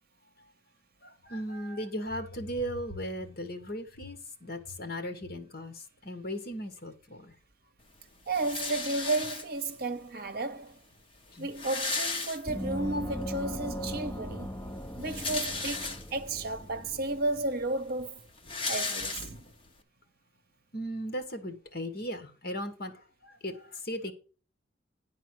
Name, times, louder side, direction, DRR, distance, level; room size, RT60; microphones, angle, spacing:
voice 1, 1.0-7.3 11.3-11.5 20.7-22.9 23.2-24.1, equal, 50° left, 1.7 m, -37 dB
sound 1, 8.3-9.8 10.6-10.7 10.9-11.0 11.3-12.9 13.3-13.4 14.8-16.3 17.0-17.1 17.3-19.7, left 4 dB, 30° left, 1.2 m, -35 dB
voice 2, 8.3-10.8 11.4-18.2 18.7-19.5, right 2 dB, 50° right, 0.9 m, -33 dB
Gong, 12.5-17.7, equal, 10° left, 0.5 m, -39 dB
10.5 x 4.1 x 7.8 m
head